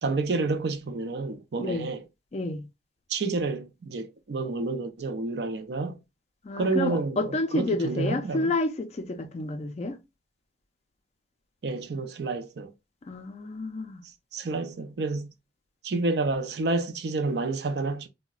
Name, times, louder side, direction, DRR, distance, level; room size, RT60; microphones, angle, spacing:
voice 1, 0.0-2.0 3.1-6.0 6.6-8.5 11.6-12.7 14.3-15.3 15.8-18.1, right 3 dB, 65° right, 0.4 m, -29 dB
voice 2, 1.6-1.9 2.3-2.7 6.4-10.0 13.1-14.0, left 2 dB, 35° left, 0.4 m, -30 dB
3.7 x 2.1 x 2.3 m
head